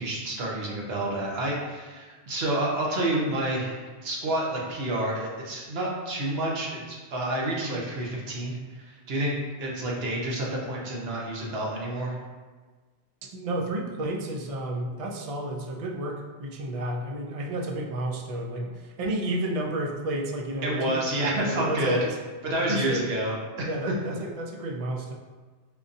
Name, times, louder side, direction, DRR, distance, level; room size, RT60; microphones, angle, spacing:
voice 1, 0.0-12.2 20.6-22.0 22.4-23.9, right 1 dB, 70° right, -3 dB, 1.0 m, -29 dB
voice 2, 13.2-22.2 22.7-23.1 23.7-25.1, right 1 dB, 55° right, 1 dB, 0.4 m, -31 dB
4.9 x 2.6 x 2.6 m, 1.4 s
omnidirectional pair, 1.1 m